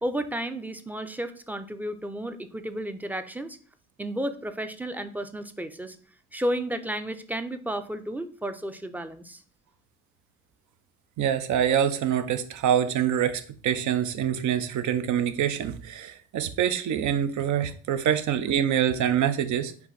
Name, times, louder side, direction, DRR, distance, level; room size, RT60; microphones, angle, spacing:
voice 1, 0.0-3.6 4.0-6.0 6.3-9.4, right 1 dB, 5° right, 9 dB, 0.4 m, -32 dB
voice 2, 11.2-19.7, right 9 dB, 75° right, 10 dB, 0.6 m, -25 dB
4.6 x 2.6 x 4.0 m, 0.42 s
cardioid pair, 90°, 30 cm